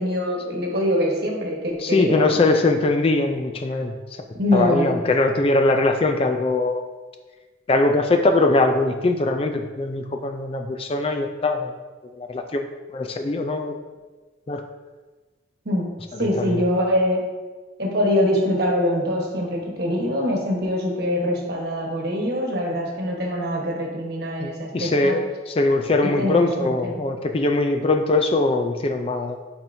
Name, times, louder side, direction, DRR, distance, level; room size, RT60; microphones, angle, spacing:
voice 1, 0.0-2.4 4.3-4.9 15.6-15.9 16.2-17.2 17.8-25.2 26.0-27.0, equal, 55° right, -1 dB, 1.2 m, -23 dB
voice 2, 1.8-3.9 4.5-6.8 7.7-11.7 12.1-12.6 12.9-13.7 14.5-14.6 16.1-16.6 24.4-29.4, left 2 dB, 30° left, 5 dB, 0.3 m, -21 dB
8.9 x 4.4 x 2.6 m, 1.3 s
head